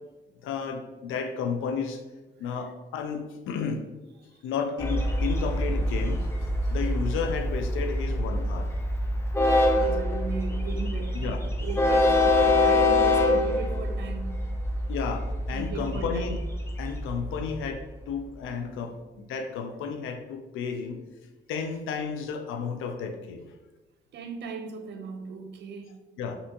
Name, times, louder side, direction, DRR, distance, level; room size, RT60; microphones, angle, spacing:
voice 1, 0.4-2.0 2.4-3.8 4.4-6.3 6.7-8.7 9.6-9.7 11.1-11.4 14.9-16.4 16.8-21.0 21.5-23.5 26.2-26.4, left 6 dB, 85° left, 6 dB, 0.4 m, -32 dB
Train, 4.8-17.8, left 1 dB, 15° left, 0.4 m, -25 dB
voice 2, 9.7-14.5 15.5-16.3 18.5-18.6 24.1-26.0, right 4 dB, 60° right, 6 dB, 0.5 m, -37 dB
3.3 x 2.8 x 2.7 m, 1.2 s
cardioid pair, 90°, 20 cm